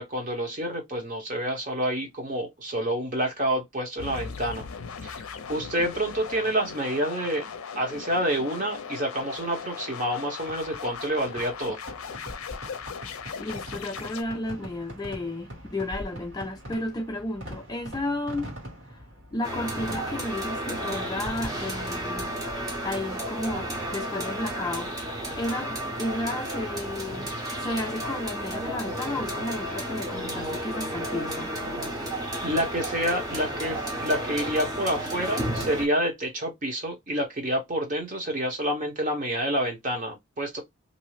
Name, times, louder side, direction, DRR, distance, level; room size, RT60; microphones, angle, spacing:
voice 1, 0.0-4.7 5.0-5.2 5.5-7.4 7.8-11.8 32.4-40.6, equal, 40° right, 0.9 m, -28 dB
sound 1, 4.0-14.2, left 6 dB, 80° left, 0.5 m, -38 dB
Fireworks, 10.5-24.0, equal, 60° right, 1.6 m, -43 dB
voice 2, 13.4-18.5 18.9-19.0 19.3-22.3 22.8-27.3 27.6-31.5, left 1 dB, 20° left, 0.4 m, -33 dB
sound 2, 19.4-35.9, right 1 dB, 15° right, 0.7 m, -32 dB
2.6 x 2.0 x 3.0 m
head